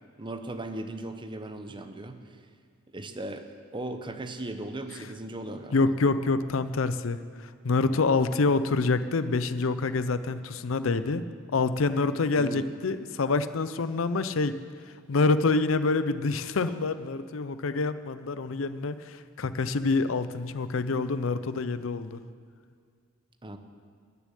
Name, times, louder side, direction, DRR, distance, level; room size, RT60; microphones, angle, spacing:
voice 1, 0.2-2.2 2.9-5.9 12.3-12.7 23.4-23.6, right 1 dB, 25° right, 8 dB, 0.8 m, -37 dB
voice 2, 5.7-7.2 7.6-11.2 11.5-14.6 15.1-22.2, left 3 dB, 75° left, 13 dB, 0.6 m, -26 dB
14.0 x 6.9 x 9.8 m, 2.1 s
head